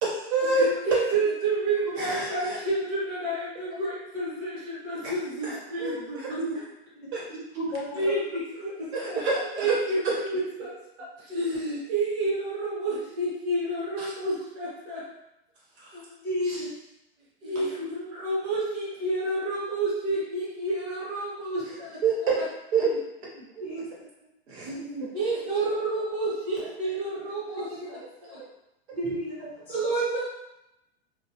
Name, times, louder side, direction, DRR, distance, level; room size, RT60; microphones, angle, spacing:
voice 1, 0.0-0.7 2.0-2.6 5.0-5.1 5.5-6.3 7.1-7.2 8.9-9.8 14.0-14.1 15.8-16.0 16.5-16.6 22.0-22.9 23.5-23.6 24.5-24.8, right 4 dB, 85° right, -4 dB, 1.1 m, -28 dB
voice 2, 0.5-6.4 7.9-9.2 9.5-10.7 11.2-15.0 15.9-16.2 17.4-22.4 23.7-23.8 24.6-28.4 29.7-30.2, right 2 dB, 40° right, -6 dB, 1.0 m, -30 dB
voice 3, 7.5-8.1 16.2-16.7 23.6-23.9 24.5-24.6 27.7-27.8 28.9-29.8, equal, 5° left, -10 dB, 0.5 m, -32 dB
2.2 x 2.1 x 2.7 m, 0.87 s
supercardioid pair, 160°, 31 cm